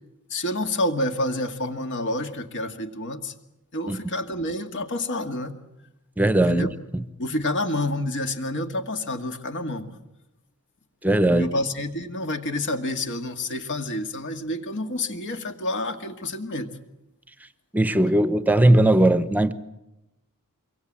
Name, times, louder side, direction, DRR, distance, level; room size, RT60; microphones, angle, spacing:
voice 1, 0.3-3.3 3.7-5.6 6.5-6.7 7.2-9.9 11.3-16.7, left 1 dB, 55° left, 6 dB, 2.0 m, -28 dB
voice 2, 6.2-6.7 11.0-11.5 17.7-19.5, right 1 dB, 5° right, 12 dB, 0.9 m, -18 dB
25.5 x 23.5 x 7.5 m, 0.93 s
head